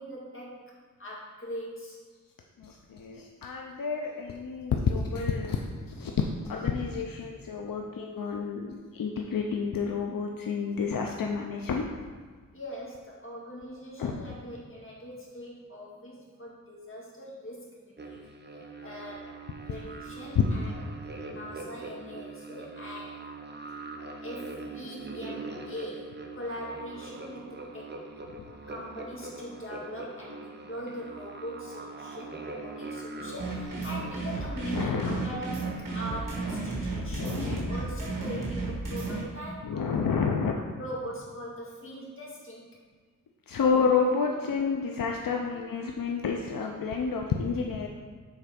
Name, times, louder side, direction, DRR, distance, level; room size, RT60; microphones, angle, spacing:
voice 1, 0.0-2.0 12.5-18.2 18.8-19.3 19.6-20.7 21.2-23.6 24.2-27.9 28.7-39.7 40.8-42.7, equal, 40° left, -4 dB, 2.1 m, -41 dB
voice 2, 2.6-11.8 14.0-14.3 34.7-35.2 37.0-37.8 39.6-40.5 43.5-47.9, left 5 dB, 80° left, 1 dB, 0.6 m, -30 dB
sound 1, 18.0-36.7, right 3 dB, 30° right, 0.8 m, -42 dB
sound 2, 33.4-39.2, right 3 dB, 70° right, 1.7 m, -33 dB
7.2 x 4.3 x 5.1 m, 1.5 s
wide cardioid pair, 90°, 33 cm